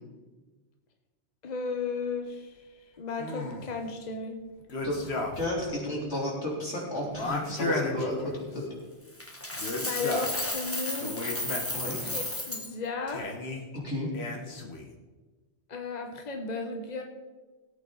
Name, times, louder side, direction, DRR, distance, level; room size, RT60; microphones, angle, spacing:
voice 1, 1.4-4.4 9.8-11.2 11.8-13.2 15.7-17.0, left 4 dB, 40° left, 3 dB, 1.2 m, -35 dB
sound 1, 3.2-3.8 4.7-5.6 5.9-6.0 7.1-8.6 9.5-10.4 11.0-12.0 13.1-13.6 14.1-14.9, left 2 dB, 65° left, 1.5 m, -34 dB
voice 2, 5.4-8.6 11.7-12.0 13.8-14.1, left 1 dB, 90° left, -4 dB, 3.9 m, -32 dB
Coin (dropping), 9.2-12.7, left 1 dB, 15° left, 1.2 m, -33 dB
18.0 x 8.5 x 3.9 m, 1.3 s
omnidirectional pair, 1.1 m